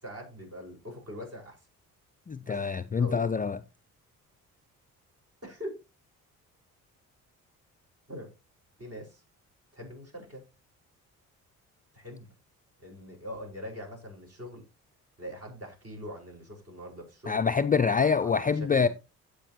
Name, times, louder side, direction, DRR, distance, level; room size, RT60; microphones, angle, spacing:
voice 1, 0.0-1.6 2.4-2.7 3.0-3.3 5.4-5.8 8.1-8.3 8.8-9.2 9.7-10.4 11.9-12.3 12.8-14.6 15.2-17.4 18.0-18.9, equal, 35° right, 5.6 m, -42 dB
voice 2, 2.3-3.6 17.3-18.9, left 5 dB, 20° left, 0.5 m, -25 dB
16.0 x 5.4 x 3.0 m
hypercardioid pair, 45°, 42 cm